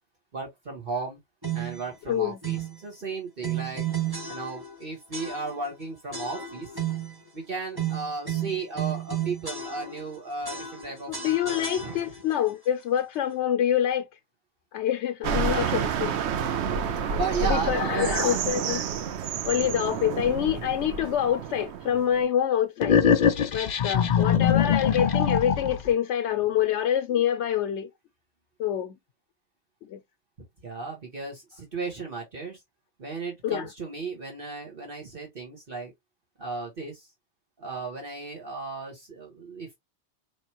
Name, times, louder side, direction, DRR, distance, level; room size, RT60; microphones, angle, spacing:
voice 1, 0.3-1.2 1.5-3.9 4.3-6.8 7.3-12.1 17.1-18.3 19.6-19.7 20.1-20.6 24.3-24.5 30.6-32.6 33.0-35.9 36.4-37.1 37.6-39.8, right 4 dB, 55° right, 1.5 m, -35 dB
sound 1, 1.4-1.9 2.4-2.8 3.4-4.8 5.1-5.7 6.1-7.2 7.7-10.1 10.4-12.3, right 8 dB, 20° right, 1.1 m, -33 dB
voice 2, 2.1-2.4 11.1-14.1 14.7-16.2 16.8-17.0 17.5-19.1 19.4-23.0 23.5-27.9 28.6-29.0 29.9-30.0 33.4-33.7, left 10 dB, 85° left, 0.9 m, -26 dB
sound 2, 15.2-22.3, right 7 dB, 75° right, 0.9 m, -29 dB
sound 3, 22.8-25.9, left 7 dB, 50° left, 0.6 m, -22 dB
4.9 x 3.2 x 2.8 m
omnidirectional pair, 1.2 m